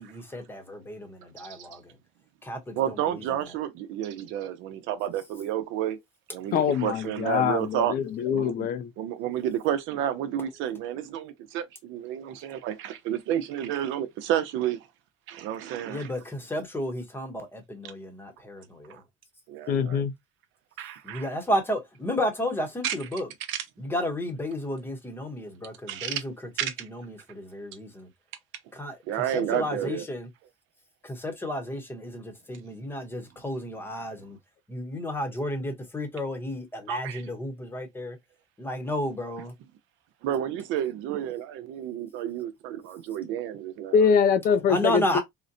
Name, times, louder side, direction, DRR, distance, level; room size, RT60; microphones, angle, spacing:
voice 1, 0.0-1.9 2.4-3.0 3.4-3.5 15.9-19.0 21.0-23.3 23.8-26.3 26.6-28.1 28.7-30.3 31.0-34.4 34.7-38.2 38.6-39.5 44.7-45.2, left 1 dB, 10° left, 0.9 m, -32 dB
voice 2, 1.4-1.7 2.7-6.0 6.3-7.9 8.3-8.7 9.0-14.8 15.3-16.1 18.9-19.0 19.5-20.0 20.8-21.3 22.8-22.9 23.5-23.6 25.9-26.2 26.6-26.9 29.1-30.0 36.9-37.2 40.2-44.1, right 11 dB, 70° right, 0.7 m, -31 dB
voice 3, 6.5-8.9 19.7-20.1 43.9-45.2, left 7 dB, 45° left, 0.4 m, -23 dB
3.9 x 2.1 x 2.6 m
cardioid pair, 140°, 21 cm